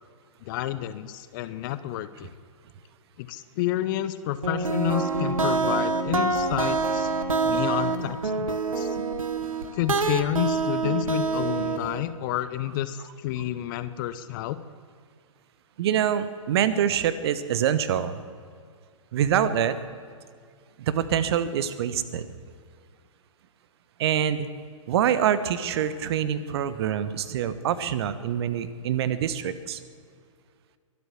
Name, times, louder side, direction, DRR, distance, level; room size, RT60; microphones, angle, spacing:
voice 1, 0.4-2.3 3.2-7.1 7.4-9.0 9.7-14.6, left 13 dB, 40° left, 13 dB, 0.7 m, -30 dB
sound 1, 4.4-12.0, right 4 dB, 80° right, 1.3 m, -26 dB
voice 2, 15.8-18.2 19.1-19.8 20.8-22.3 24.0-24.5 24.9-29.8, right 9 dB, 50° right, 14 dB, 1.1 m, -25 dB
23.0 x 8.2 x 7.4 m, 2.1 s
figure-of-eight pair, 115°, 17 cm